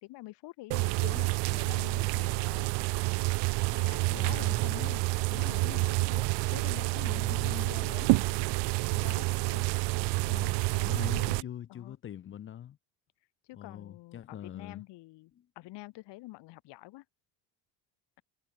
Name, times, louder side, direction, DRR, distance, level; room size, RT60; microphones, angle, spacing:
voice 1, 0.0-2.7 3.7-5.0 5.3-8.4 8.9-9.7 10.7-12.0 13.4-17.0, left 19 dB, 70° left, 5.0 m, -47 dB
sound 1, 0.7-11.4, right 26 dB, 70° right, 0.6 m, -29 dB
voice 2, 1.6-2.3 4.1-5.0 7.0-7.8 10.2-12.8 13.6-14.8 15.3-15.5, left 10 dB, 30° left, 0.7 m, -44 dB
cardioid pair, 170°, 43 cm